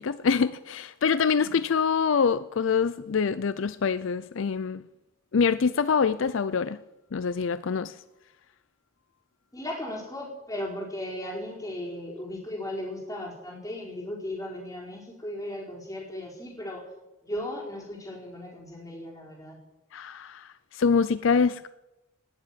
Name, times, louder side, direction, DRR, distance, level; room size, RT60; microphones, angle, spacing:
voice 1, 0.0-4.8 5.3-6.8 7.1-8.0 19.9-21.7, left 5 dB, 70° left, 0.5 m, -25 dB
voice 2, 9.5-16.9 17.2-19.6, left 1 dB, 15° left, 4.5 m, -36 dB
19.0 x 7.7 x 9.2 m
head